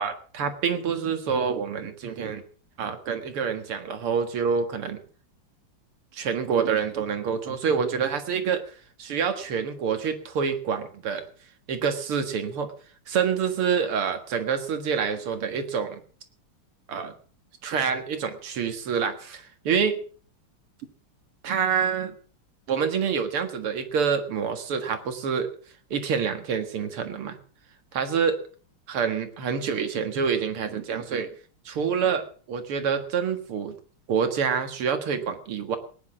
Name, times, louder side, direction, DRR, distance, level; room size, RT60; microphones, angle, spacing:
voice 1, 0.0-2.4 2.8-5.0 6.1-8.7 9.0-11.3 11.7-12.7 13.1-16.0 16.9-17.1 17.6-20.0 21.4-22.1 22.7-25.5 25.9-27.4 27.9-28.4 28.9-31.3 31.7-33.7 34.1-35.8, right 6 dB, 85° right, 8 dB, 2.6 m, -27 dB
18.0 x 10.5 x 6.1 m, 0.42 s
omnidirectional pair, 2.4 m